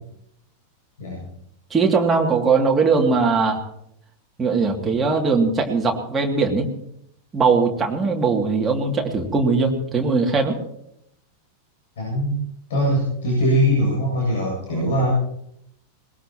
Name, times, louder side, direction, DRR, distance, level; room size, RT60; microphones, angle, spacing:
voice 1, 1.7-3.6 4.4-6.7 7.3-10.6 14.7-14.9, right 4 dB, 15° right, 0 dB, 2.6 m, -20 dB
voice 2, 12.0-12.4 12.7-15.1, equal, 60° left, -3 dB, 7.9 m, -21 dB
22.0 x 20.5 x 3.0 m, 0.74 s
figure-of-eight pair, 90°, 0 cm